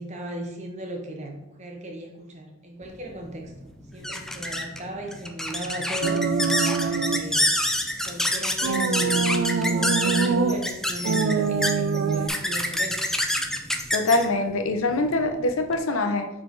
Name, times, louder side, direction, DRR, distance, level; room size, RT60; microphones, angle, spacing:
voice 1, 0.0-6.3 6.8-7.6 8.1-13.0, right 1 dB, 35° right, 2 dB, 1.0 m, -37 dB
sound 1, 2.9-15.8, left 1 dB, ahead, 0.4 m, -28 dB
sound 2, 6.0-7.3 8.6-10.6 11.0-12.3, right 4 dB, 85° right, 0.5 m, -24 dB
voice 2, 13.9-16.3, left 2 dB, 85° left, 7 dB, 0.7 m, -24 dB
5.0 x 4.2 x 4.6 m, 0.88 s
head